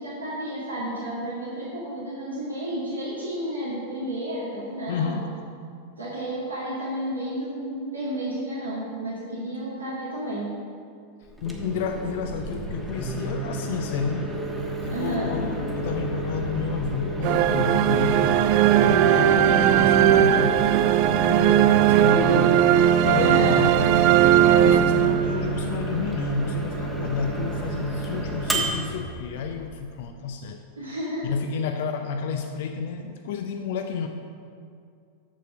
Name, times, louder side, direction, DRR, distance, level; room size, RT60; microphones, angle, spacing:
voice 1, 0.0-5.2 6.0-10.5 14.9-15.3 21.9-22.4 23.1-23.6 30.8-31.3, right 1 dB, 75° right, -9 dB, 2.1 m, -31 dB
voice 2, 4.9-5.3 11.4-14.3 14.8-18.5 18.8-20.6 21.1-23.7 24.6-30.6 31.2-34.1, left 5 dB, 55° left, 5 dB, 0.5 m, -30 dB
Microwave oven, 11.3-30.1, right 2 dB, 5° right, 1.2 m, -31 dB
sound 1, 17.2-25.6, right 11 dB, 45° right, 0.3 m, -18 dB
7.6 x 6.8 x 6.2 m, 2.3 s
figure-of-eight pair, 90°, 0 cm